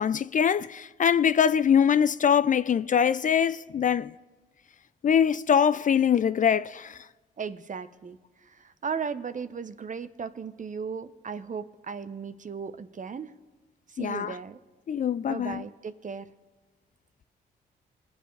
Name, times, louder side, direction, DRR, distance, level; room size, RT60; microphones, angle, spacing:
voice 1, 0.0-4.1 5.0-7.0 14.0-14.4 14.9-15.6, left 8 dB, 40° left, 0.4 m, -23 dB
voice 2, 7.4-8.2 8.4-13.3 13.9-14.6 15.3-16.3, right 6 dB, 40° right, 0.8 m, -36 dB
23.0 x 7.9 x 3.3 m
supercardioid pair, 50°, 20 cm